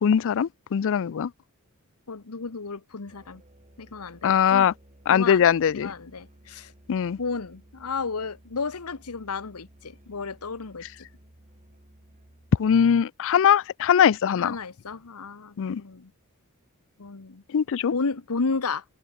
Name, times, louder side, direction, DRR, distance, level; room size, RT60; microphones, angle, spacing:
voice 1, 0.0-1.3 4.2-4.7 5.1-5.9 6.9-7.2 12.6-14.6 15.6-15.8 17.5-17.9, left 8 dB, 60° left, 0.4 m, -21 dB
voice 2, 2.1-3.4 3.8-4.7 5.1-5.4 5.7-6.7 7.2-10.8 14.4-16.1 17.0-17.4 17.9-18.8, left 4 dB, 80° left, 1.0 m, -32 dB
Musical instrument, 3.1-12.9, right 1 dB, 35° right, 3.3 m, -55 dB
head